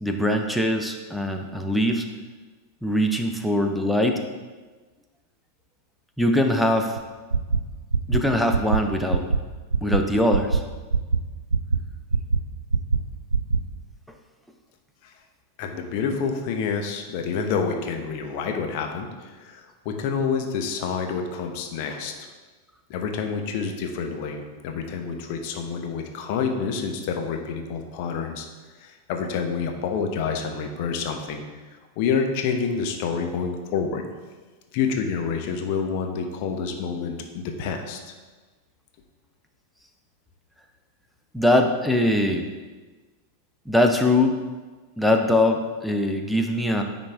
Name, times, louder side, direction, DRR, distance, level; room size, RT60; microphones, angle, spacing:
voice 1, 0.0-2.1 2.8-4.2 6.2-7.0 8.1-9.3 9.8-10.6 41.3-42.5 43.7-44.4 45.0-46.8, left 1 dB, ahead, 3 dB, 0.7 m, -22 dB
sound 1, 7.0-7.1 7.3-7.6 7.9-8.2 8.5-8.8 9.1-9.4 9.7-10.0 10.3-10.6 10.9-11.2 11.5-11.8 12.1-12.4 12.7-13.0 13.3-13.6, right 5 dB, 75° right, 0.3 m, -21 dB
voice 2, 15.6-22.1 22.9-28.5 28.8-31.4 32.0-34.0 34.7-38.0, left 5 dB, 45° left, 4 dB, 0.8 m, -28 dB
9.8 x 4.2 x 3.4 m, 1.3 s
figure-of-eight pair, 90°, 0 cm